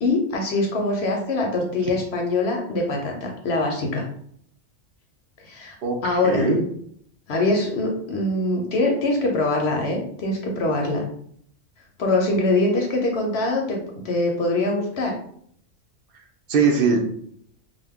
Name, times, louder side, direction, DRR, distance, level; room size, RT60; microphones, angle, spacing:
voice 1, 0.0-4.1 5.4-5.8 6.0-6.5 7.3-11.0 12.0-13.8 14.0-15.1, left 2 dB, 65° left, 1 dB, 0.8 m, -23 dB
voice 2, 5.8-6.6 16.5-17.0, right 4 dB, 60° right, 3 dB, 0.6 m, -20 dB
2.5 x 2.3 x 3.4 m, 0.65 s
omnidirectional pair, 1.3 m